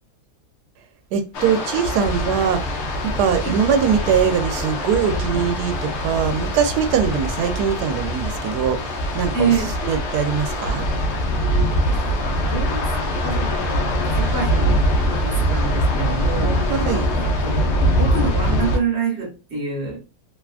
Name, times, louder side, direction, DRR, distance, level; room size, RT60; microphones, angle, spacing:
voice 1, 1.1-9.5 9.8-10.9 16.7-17.1, right 7 dB, 85° right, 1.1 m, -22 dB
sound 1, 1.3-18.8, equal, 65° left, 0.7 m, -23 dB
voice 2, 9.3-9.7 11.9-16.6 17.1-20.1, right 5 dB, 45° right, 1.1 m, -27 dB
2.9 x 2.2 x 2.4 m
omnidirectional pair, 1.7 m